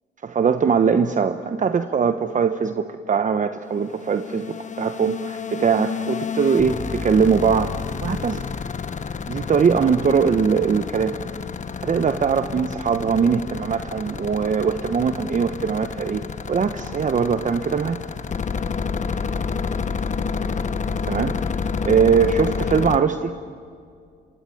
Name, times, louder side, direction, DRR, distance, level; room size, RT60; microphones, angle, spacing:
voice 1, 0.2-8.4 9.3-11.2 11.8-16.2 16.5-18.0 21.1-21.3 21.8-23.3, right 6 dB, 40° right, 9 dB, 1.1 m, -21 dB
sound 1, 3.7-23.0, left 5 dB, 40° left, 1.3 m, -29 dB
26.0 x 24.0 x 9.3 m, 2.3 s
cardioid pair, 90°, 20 cm